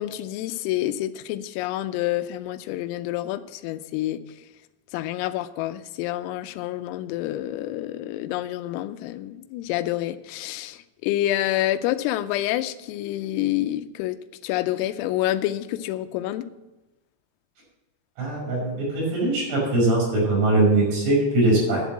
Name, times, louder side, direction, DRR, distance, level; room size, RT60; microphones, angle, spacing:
voice 1, 0.0-4.2 4.9-14.2 14.4-16.5, left 14 dB, 85° left, 10 dB, 3.3 m, -28 dB
voice 2, 18.2-21.8, right 2 dB, 50° right, -4 dB, 7.5 m, -21 dB
11.0 x 7.2 x 7.4 m, 1.0 s
omnidirectional pair, 5.9 m